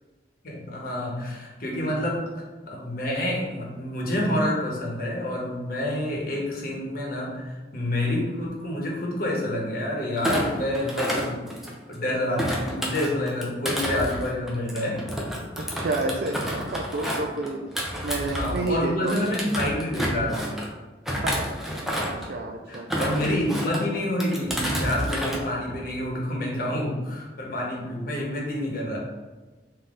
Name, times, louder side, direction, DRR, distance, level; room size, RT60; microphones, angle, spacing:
voice 1, 0.4-2.2 2.6-11.4 11.9-15.0 15.6-15.9 18.1-20.5 22.7-29.0, left 1 dB, 55° left, -2 dB, 1.0 m, -28 dB
Thump thud, 10.2-11.9 12.4-18.7 19.1-20.7 21.1-22.3 22.7-23.8 24.2-25.4 25.7-26.0, equal, ahead, 0.5 m, -30 dB
voice 2, 15.6-19.4 21.2-21.5 22.0-23.0, right 2 dB, 55° right, 1 dB, 0.3 m, -30 dB
3.8 x 2.7 x 3.6 m, 1.2 s
head